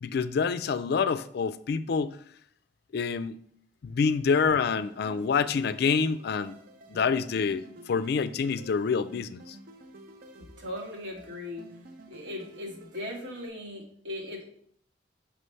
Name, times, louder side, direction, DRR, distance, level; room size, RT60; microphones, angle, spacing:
voice 1, 0.0-2.2 2.9-3.4 3.8-6.5 6.9-9.6, left 5 dB, 55° left, 13 dB, 0.3 m, -27 dB
sound 1, 4.8-13.5, right 1 dB, 55° right, 0.7 m, -51 dB
voice 2, 10.4-11.6 12.1-14.6, left 1 dB, 85° right, -3 dB, 2.0 m, -38 dB
5.7 x 3.2 x 5.4 m, 0.63 s
head